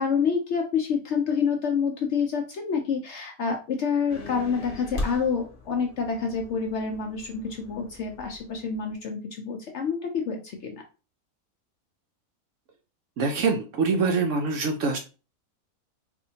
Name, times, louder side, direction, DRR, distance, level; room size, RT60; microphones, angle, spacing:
voice 1, 0.0-10.8, left 6 dB, 65° left, 3 dB, 0.7 m, -28 dB
sound 1, 4.1-8.9, left 2 dB, 40° left, 0.9 m, -39 dB
voice 2, 13.2-15.0, right 4 dB, 70° right, 5 dB, 0.8 m, -24 dB
4.2 x 2.6 x 2.7 m, 0.34 s
omnidirectional pair, 1.6 m